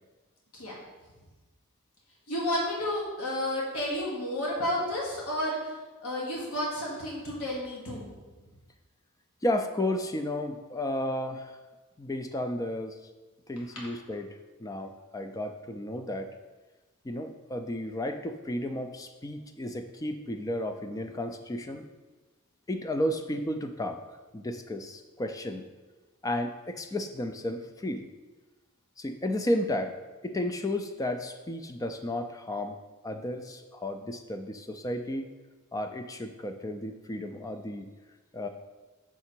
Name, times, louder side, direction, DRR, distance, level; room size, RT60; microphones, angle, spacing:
voice 1, 2.3-5.6 6.0-8.1 13.7-13.9, left 1 dB, 75° left, -3 dB, 1.3 m, -31 dB
voice 2, 9.4-11.6 12.0-13.0 13.5-16.3 17.0-21.9 22.7-24.0 24.3-25.7 26.2-28.0 29.0-29.9 30.2-32.7 33.0-35.3 35.7-37.9 38.3-38.5, left 1 dB, 15° left, 7 dB, 0.3 m, -33 dB
5.8 x 3.6 x 4.4 m, 1.2 s
head